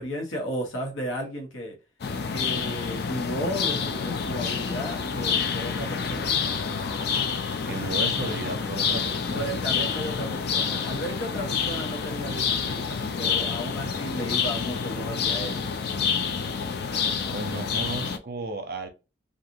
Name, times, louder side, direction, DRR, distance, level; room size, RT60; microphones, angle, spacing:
voice 1, 0.0-1.7 2.3-6.4 9.3-15.7, equal, 80° left, 1.1 m, -34 dB
sound 1, 2.0-18.2, left 6 dB, 50° left, 0.4 m, -28 dB
voice 2, 7.7-9.6 17.3-18.9, right 3 dB, 50° right, 0.6 m, -34 dB
2.5 x 2.5 x 2.8 m
head